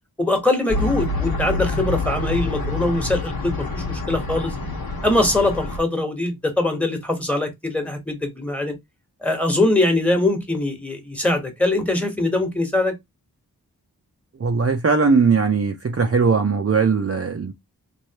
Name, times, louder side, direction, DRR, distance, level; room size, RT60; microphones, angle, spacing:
voice 1, 0.2-4.5 5.0-8.7 9.2-12.9, left 2 dB, 5° left, 1.3 m, -22 dB
sound 1, 0.7-5.8, left 3 dB, 75° left, 1.2 m, -27 dB
voice 2, 14.4-17.5, right 5 dB, 40° right, 0.5 m, -19 dB
3.2 x 2.6 x 2.9 m
wide cardioid pair, 55°, 36 cm